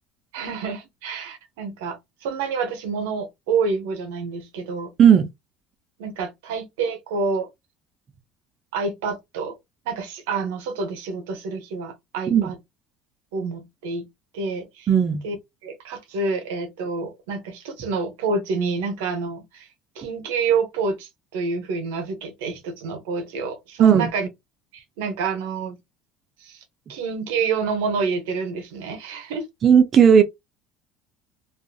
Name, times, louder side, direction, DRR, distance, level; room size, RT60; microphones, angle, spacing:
voice 1, 0.3-4.9 6.0-7.5 8.7-9.6 9.9-12.6 13.3-14.1 14.3-14.9 15.2-15.4 15.6-19.7 20.0-24.3 24.7-25.7 26.4-26.6 26.9-29.5, right 4 dB, 90° right, 0.7 m, -28 dB
voice 2, 14.9-15.2 23.8-24.1 29.6-30.2, right 8 dB, 45° right, 0.5 m, -14 dB
2.4 x 2.3 x 2.6 m
supercardioid pair, 100°, 0 cm